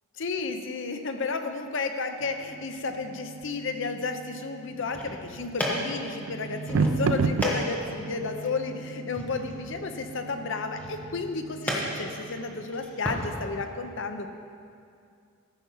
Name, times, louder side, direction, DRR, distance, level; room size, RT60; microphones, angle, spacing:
voice 1, 0.2-14.3, left 4 dB, 60° left, 7 dB, 0.7 m, -32 dB
sound 1, 2.2-13.0, right 4 dB, 90° right, 0.4 m, -34 dB
sound 2, 4.7-13.2, equal, 10° left, 1.2 m, -35 dB
14.0 x 5.7 x 5.6 m, 2.4 s
head